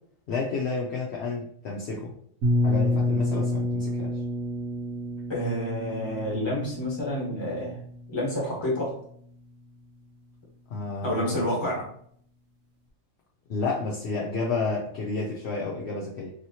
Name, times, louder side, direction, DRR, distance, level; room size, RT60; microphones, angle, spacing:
voice 1, 0.3-2.1 2.6-4.1 10.7-11.7 13.5-16.3, left 3 dB, 65° left, -3 dB, 0.8 m, -31 dB
sound 1, 2.4-8.2, left 1 dB, 90° right, 1.1 m, -28 dB
voice 2, 5.3-7.8 8.1-9.0 11.0-11.9, left 1 dB, 20° left, -4 dB, 1.2 m, -29 dB
3.1 x 2.8 x 2.8 m, 0.62 s
omnidirectional pair, 1.4 m